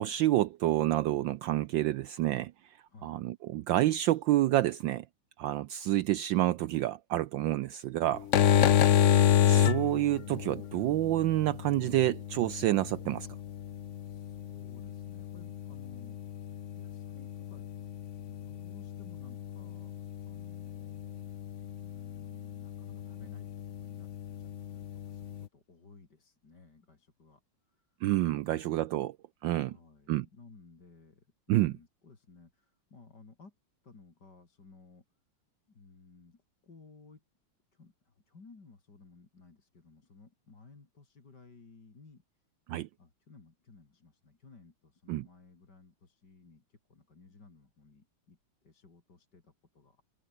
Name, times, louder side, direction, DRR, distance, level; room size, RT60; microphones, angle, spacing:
voice 1, 0.0-2.8 3.0-5.0 5.4-8.3 9.5-13.3 28.0-29.2 29.4-29.7 30.1-30.3 31.5-31.8 42.7-42.9 45.1-45.3, right 14 dB, 75° right, 1.2 m, -28 dB
sound 1, 8.1-25.5, left 10 dB, 85° left, 0.6 m, -31 dB
voice 2, 14.0-16.2 16.7-17.7 18.0-19.9 20.2-21.2 21.6-24.1 24.4-28.0 28.6-28.7 28.9-29.1 29.6-33.5 33.8-35.0 35.7-37.2 37.7-42.4 43.0-48.4 48.6-50.0, left 4 dB, 50° left, 4.0 m, -57 dB
omnidirectional pair, 2.4 m